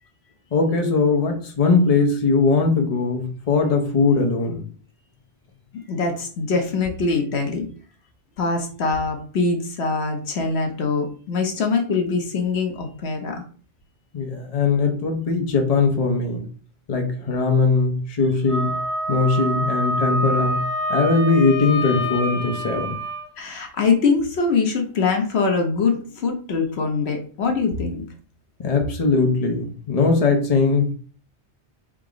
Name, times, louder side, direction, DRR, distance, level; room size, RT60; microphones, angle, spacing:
voice 1, 0.5-4.6 14.1-16.4 16.9-18.8 19.1-20.6 20.9-23.0 28.6-30.9, left 4 dB, 35° left, 3 dB, 0.9 m, -20 dB
voice 2, 5.9-7.7 8.4-13.4 23.4-28.0, left 4 dB, 70° left, 3 dB, 1.1 m, -23 dB
Wind instrument woodwind instrument, 18.5-23.2, equal, 15° left, 1.8 m, -26 dB
3.7 x 2.9 x 4.9 m, 0.42 s
omnidirectional pair, 1.1 m